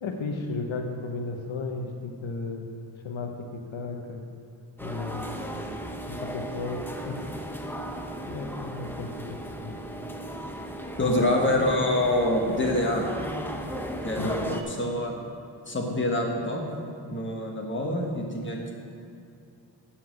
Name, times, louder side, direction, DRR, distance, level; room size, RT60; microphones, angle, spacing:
voice 1, 0.0-2.6 3.0-4.3 4.8-5.4 6.0-7.7 8.2-9.8 14.2-14.3, left 3 dB, 80° left, 3 dB, 0.9 m, -35 dB
sound 1, 4.8-14.6, equal, 5° left, 0.6 m, -36 dB
voice 2, 11.0-13.0 14.0-15.1 15.7-16.6 17.0-18.7, left 1 dB, 25° left, -1 dB, 1.4 m, -26 dB
7.9 x 5.7 x 7.4 m, 2.6 s
wide cardioid pair, 110°, 46 cm